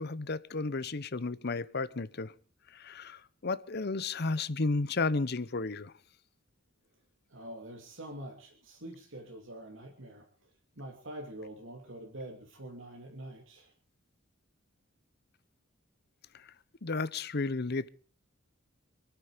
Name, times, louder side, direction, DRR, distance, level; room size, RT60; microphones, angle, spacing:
voice 1, 0.0-2.3 2.7-5.9 16.3-16.5 16.8-17.9, left 3 dB, 50° left, 0.8 m, -33 dB
voice 2, 7.3-10.5 10.8-13.7, right 1 dB, 65° right, 2.9 m, -45 dB
27.5 x 9.3 x 5.1 m
head